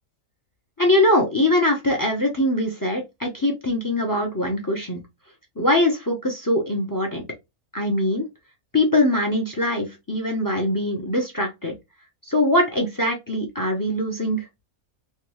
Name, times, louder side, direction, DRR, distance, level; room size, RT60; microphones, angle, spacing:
voice 1, 0.8-5.0 5.6-7.2 7.7-8.3 8.7-11.7 12.3-14.4, left 1 dB, 20° left, 0.5 m, -22 dB
3.5 x 2.3 x 3.0 m
omnidirectional pair, 1.5 m